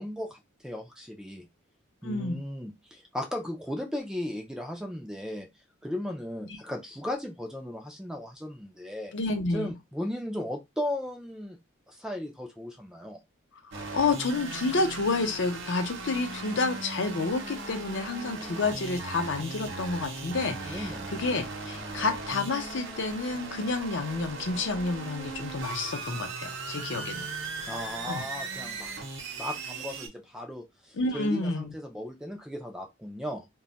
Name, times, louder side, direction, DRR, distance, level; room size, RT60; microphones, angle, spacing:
voice 1, 0.0-1.5 2.0-5.5 5.8-9.1 9.5-11.6 11.9-13.2 20.6-21.1 27.6-28.9 29.4-33.5, left 1 dB, 5° right, 0.3 m, -36 dB
voice 2, 2.0-2.4 9.1-9.7 13.7-27.3 28.1-28.2 30.9-31.7, left 3 dB, 60° left, 0.6 m, -30 dB
sound 1, 13.7-30.1, right 3 dB, 55° right, 0.7 m, -38 dB
2.3 x 2.1 x 3.8 m
head